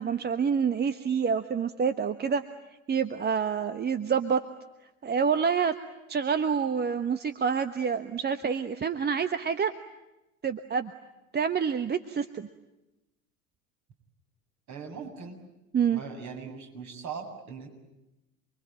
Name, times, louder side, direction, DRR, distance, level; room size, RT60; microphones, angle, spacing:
voice 1, 0.0-2.4 2.9-4.4 5.0-5.7 6.1-9.7 10.4-10.9 11.3-12.5 15.7-16.0, right 6 dB, 25° right, 10 dB, 1.3 m, -27 dB
voice 2, 14.7-15.4 15.9-17.7, right 5 dB, 45° right, 3 dB, 7.8 m, -40 dB
29.0 x 23.0 x 9.0 m, 0.95 s
hypercardioid pair, 75°, 41 cm